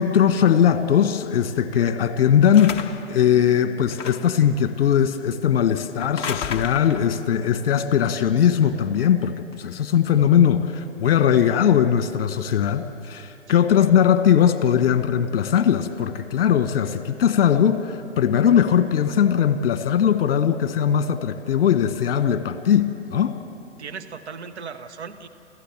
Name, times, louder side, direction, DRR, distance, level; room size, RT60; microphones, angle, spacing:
voice 1, 0.0-23.3, left 9 dB, 50° left, 10 dB, 1.5 m, -20 dB
sound 1, 2.5-3.2 3.9-4.4 6.0-7.1, left 7 dB, 15° left, 0.7 m, -32 dB
voice 2, 13.5-13.9 23.8-25.3, right 5 dB, 65° right, 9 dB, 1.5 m, -37 dB
28.5 x 14.5 x 7.3 m, 2.7 s
figure-of-eight pair, 120°, 37 cm